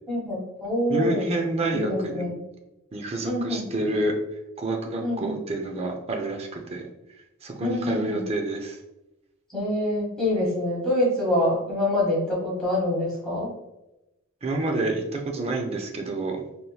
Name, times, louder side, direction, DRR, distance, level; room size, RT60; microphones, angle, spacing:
voice 1, 0.1-1.3 1.7-2.4 3.2-3.6 5.0-5.4 7.6-8.2 9.5-13.5, left 1 dB, 5° left, -7 dB, 1.3 m, -26 dB
voice 2, 0.9-2.2 2.9-4.1 4.6-6.9 7.4-8.8 14.4-16.4, right 2 dB, 30° right, 2 dB, 0.4 m, -28 dB
3.4 x 2.8 x 2.3 m, 0.94 s
head